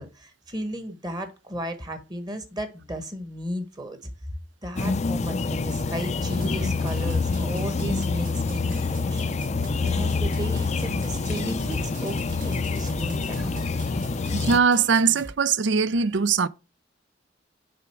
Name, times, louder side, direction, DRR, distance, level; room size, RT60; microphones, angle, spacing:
voice 1, 0.0-4.1 4.6-9.4 9.8-13.6, equal, 20° right, 1.3 m, -34 dB
sound 1, 4.8-14.6, left 4 dB, 35° left, 0.4 m, -27 dB
sound 2, 6.2-15.3, right 2 dB, 45° right, 0.8 m, -42 dB
voice 2, 14.3-16.5, right 5 dB, 70° right, 0.5 m, -21 dB
6.7 x 5.1 x 4.5 m
head